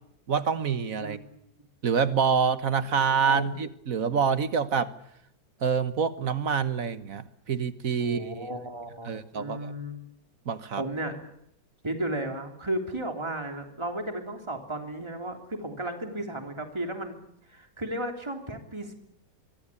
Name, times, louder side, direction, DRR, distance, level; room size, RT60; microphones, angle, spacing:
voice 1, 0.3-1.2 1.8-4.9 5.6-8.3 9.1-9.7 10.5-10.8, right 6 dB, 50° right, 13 dB, 1.5 m, -26 dB
voice 2, 1.0-1.3 2.9-3.5 8.0-10.0 10.8-11.2 11.8-17.2 17.5-18.9, right 1 dB, 15° right, 5 dB, 3.3 m, -34 dB
24.5 x 24.0 x 8.6 m, 0.75 s
omnidirectional pair, 2.0 m